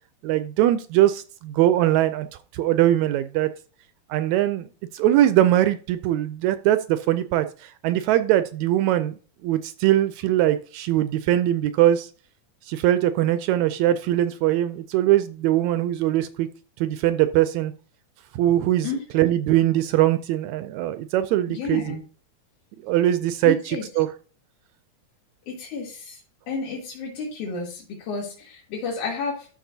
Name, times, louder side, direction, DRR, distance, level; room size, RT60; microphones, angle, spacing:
voice 1, 0.2-2.3 2.5-3.5 4.1-4.7 4.9-12.1 12.7-16.5 16.8-17.7 18.3-18.9 19.1-21.9 22.8-24.1, right 13 dB, 80° right, 11 dB, 1.7 m, -21 dB
voice 2, 18.8-19.2 21.5-22.0 23.4-23.8 25.5-26.2 26.5-29.5, left 4 dB, 75° left, -4 dB, 3.3 m, -31 dB
12.5 x 6.6 x 2.7 m, 0.39 s
omnidirectional pair, 3.6 m